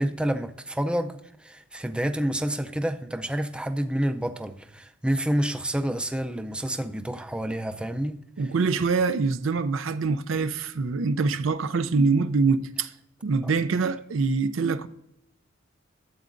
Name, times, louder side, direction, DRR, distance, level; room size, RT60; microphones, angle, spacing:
voice 1, 0.0-8.2 13.4-13.5, right 1 dB, 5° right, 0.4 m, -28 dB
voice 2, 8.4-12.9 13.2-14.9, right 4 dB, 75° right, 0.5 m, -24 dB
12.5 x 8.1 x 2.5 m
head